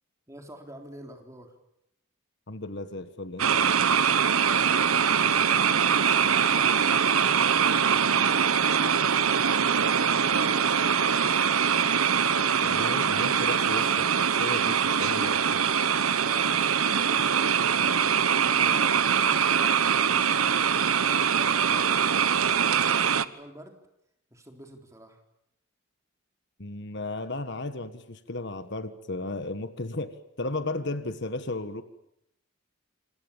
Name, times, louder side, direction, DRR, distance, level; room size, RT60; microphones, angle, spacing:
voice 1, 0.3-1.5 4.5-8.9 10.0-11.7 16.2-19.0 19.2-23.7 24.3-25.2, right 1 dB, 15° right, 3 dB, 3.9 m, -48 dB
voice 2, 2.5-4.0 12.6-15.6 26.6-31.8, left 2 dB, 55° left, 10 dB, 1.6 m, -35 dB
sound 1, 3.4-23.3, right 7 dB, 80° right, 1.1 m, -23 dB
28.5 x 26.0 x 7.4 m, 0.80 s
head